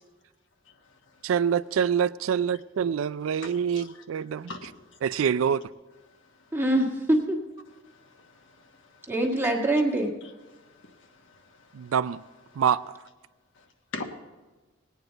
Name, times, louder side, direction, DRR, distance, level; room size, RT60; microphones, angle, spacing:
voice 1, 1.2-4.5 5.0-5.6 11.7-12.2 12.6-12.8, right 7 dB, 75° right, 0.3 m, -25 dB
voice 2, 3.4-4.0 4.5-4.7 7.6-9.1 9.4-9.5 10.5-11.9 12.5-12.6 13.6-13.7 13.9-14.0, left 3 dB, 65° left, 1.2 m, -44 dB
voice 3, 6.5-7.4 9.1-10.1, right 1 dB, 10° right, 1.5 m, -24 dB
19.0 x 9.3 x 3.9 m
head